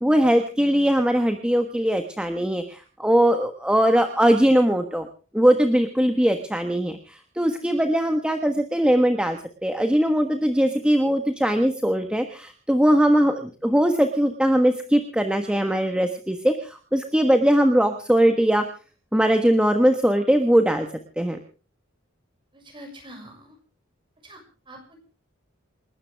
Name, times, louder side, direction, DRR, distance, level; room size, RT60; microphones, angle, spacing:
voice 1, 0.0-5.1 5.3-18.6 19.1-20.9 21.2-21.4, equal, 5° right, 6 dB, 1.3 m, -20 dB
voice 2, 22.5-23.5 24.2-24.4 24.7-25.0, right 1 dB, 25° right, 3 dB, 6.5 m, -44 dB
28.5 x 13.0 x 3.5 m, 0.38 s
head